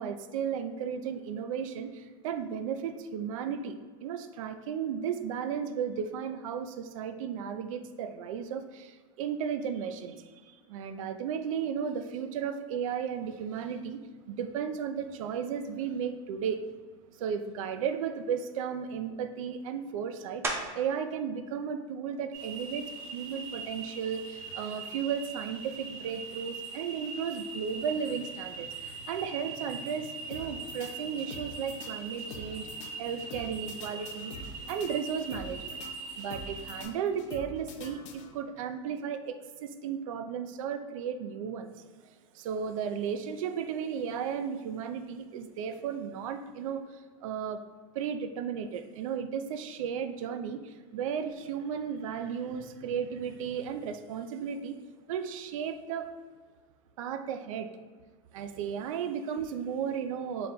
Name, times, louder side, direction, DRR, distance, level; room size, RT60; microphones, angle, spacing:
voice 1, 0.0-14.0 14.3-16.6 17.1-20.4 20.7-32.7 33.0-35.8 36.2-41.7 42.0-47.6 47.9-54.8 55.1-56.1 57.0-57.7 58.3-60.5, right 7 dB, 75° right, 9 dB, 0.4 m, -34 dB
sound 1, 20.4-21.0 21.6-26.0 26.5-31.7 32.0-37.6, right 2 dB, 15° right, 0.5 m, -45 dB
sound 2, 22.3-36.8, right 4 dB, 55° right, 1.1 m, -42 dB
sound 3, 30.3-38.6, left 2 dB, 65° left, 0.6 m, -46 dB
4.0 x 2.2 x 3.8 m, 1.4 s
supercardioid pair, 120°, 17 cm